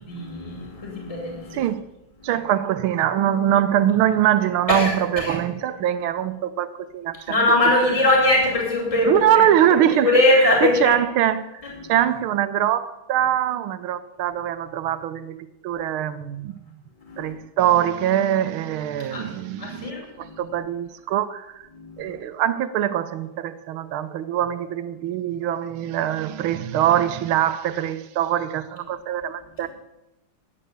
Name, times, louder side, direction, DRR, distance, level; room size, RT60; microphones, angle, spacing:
voice 1, 0.0-1.6 4.7-5.4 7.3-9.4 10.0-10.9 11.6-11.9 17.1-17.3 19.1-19.3 19.6-20.4 21.7-22.1, left 2 dB, 15° left, 2.6 m, -21 dB
voice 2, 1.5-1.8 2.2-7.4 9.0-11.6 11.9-16.6 17.2-19.9 20.2-21.6 22.0-29.7, right 11 dB, 80° right, 1.6 m, -23 dB
11.0 x 8.6 x 6.7 m
omnidirectional pair, 2.3 m